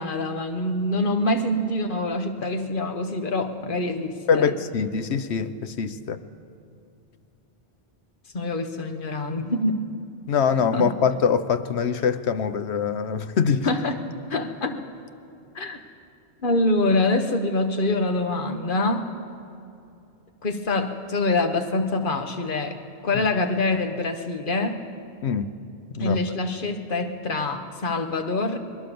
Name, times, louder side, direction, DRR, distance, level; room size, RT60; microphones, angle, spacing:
voice 1, 0.0-4.5 8.3-9.9 10.7-10.9 13.6-14.0 14.3-14.8 15.5-15.8 16.4-19.1 20.4-22.8 23.0-24.8 26.0-28.6, left 2 dB, 55° left, 7 dB, 1.4 m, -25 dB
voice 2, 4.3-6.2 10.3-13.7 23.1-23.2 25.2-25.5 25.9-26.2, left 6 dB, 90° left, 11 dB, 1.1 m, -23 dB
20.5 x 19.5 x 7.0 m, 2.7 s
omnidirectional pair, 1.1 m